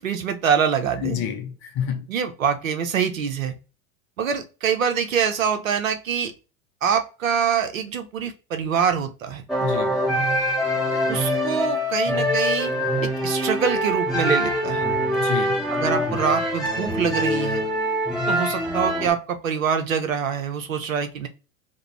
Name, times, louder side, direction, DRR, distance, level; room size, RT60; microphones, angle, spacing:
voice 1, 0.0-1.2 2.1-3.5 4.2-6.3 6.8-9.4 11.1-12.7 13.0-14.8 15.7-17.6 18.3-21.3, right 7 dB, 85° right, 0.6 m, -25 dB
voice 2, 1.0-2.1 9.6-10.0 15.2-15.7, left 9 dB, 35° left, 0.4 m, -29 dB
sound 1, 9.5-19.1, equal, ahead, 0.8 m, -24 dB
2.4 x 2.0 x 3.0 m
figure-of-eight pair, 85°, 40 cm